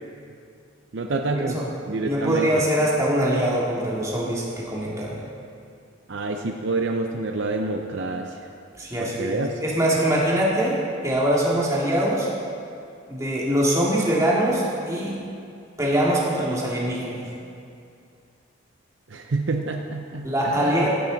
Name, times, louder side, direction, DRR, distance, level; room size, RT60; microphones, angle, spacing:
voice 1, 0.9-1.6 1.9-2.6 6.1-8.4 9.0-9.5 19.1-20.9, right 3 dB, 65° right, 4 dB, 0.6 m, -28 dB
voice 2, 2.0-5.2 8.8-12.3 13.1-15.1 15.8-17.2 20.2-20.9, right 1 dB, 15° right, -5 dB, 2.2 m, -23 dB
15.5 x 10.5 x 4.0 m, 2.4 s
head